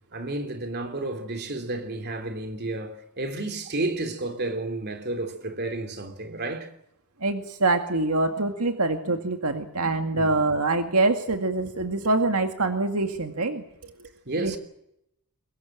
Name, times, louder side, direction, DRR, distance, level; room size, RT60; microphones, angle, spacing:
voice 1, 0.1-6.7 10.1-10.3 14.2-14.6, right 2 dB, 50° right, 3.3 m, -31 dB
voice 2, 7.2-13.6 14.4-14.6, right 2 dB, 75° right, 2.1 m, -25 dB
23.5 x 21.5 x 7.7 m
head